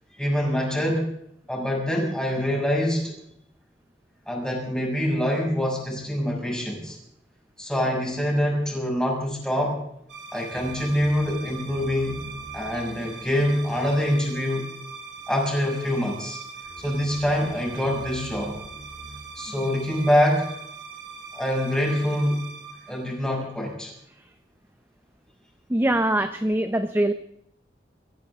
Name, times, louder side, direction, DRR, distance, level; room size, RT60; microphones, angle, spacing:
voice 1, 0.2-1.1 1.5-3.1 4.3-7.0 7.6-9.8 10.3-12.2 12.5-14.7 15.3-16.4 16.8-18.6 19.4-20.4 21.3-22.4 22.9-23.9, equal, 5° left, -2 dB, 6.7 m, -25 dB
sound 1, 10.1-23.7, right 4 dB, 70° right, 2.8 m, -40 dB
voice 2, 25.7-27.1, right 1 dB, 15° right, 8 dB, 0.7 m, -23 dB
23.5 x 16.0 x 3.7 m, 0.75 s
head